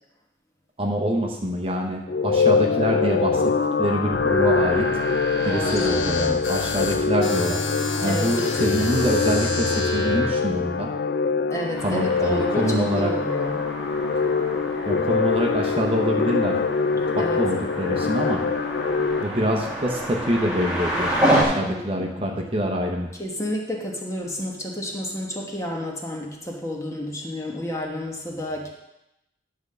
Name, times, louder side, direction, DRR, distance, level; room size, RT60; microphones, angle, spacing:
voice 1, 0.8-4.9 5.4-7.6 8.0-10.9 11.8-13.1 14.8-16.5 16.9-18.4 19.2-23.1, equal, 30° right, 1 dB, 0.9 m, -25 dB
sound 1, 2.1-19.2, left 5 dB, 55° left, 0.4 m, -24 dB
sound 2, 4.1-10.3, left 1 dB, 90° left, 1.2 m, -29 dB
voice 2, 5.4-6.4 8.0-9.1 11.5-13.6 17.2-17.4 21.6-22.5 23.2-28.7, equal, 15° left, -1 dB, 1.2 m, -31 dB
sound 3, 11.8-21.4, right 1 dB, 5° right, 1.6 m, -29 dB
10.5 x 3.8 x 6.7 m, 0.91 s
head